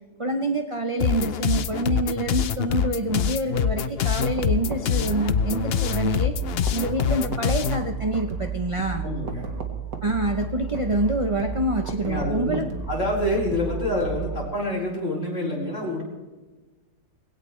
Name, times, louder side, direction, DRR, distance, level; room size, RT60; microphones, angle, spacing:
voice 1, 0.2-6.4 6.7-9.0 10.0-12.7, right 2 dB, 40° right, 5 dB, 0.4 m, -26 dB
sound 1, 1.0-7.8, left 8 dB, 70° left, 0.5 m, -25 dB
sound 2, 4.1-14.5, right 5 dB, 85° right, 2.4 m, -33 dB
voice 2, 9.0-9.5 12.0-12.6 12.9-16.0, left 1 dB, 45° left, -3 dB, 4.8 m, -27 dB
21.0 x 17.0 x 3.3 m, 1.3 s
omnidirectional pair, 1.8 m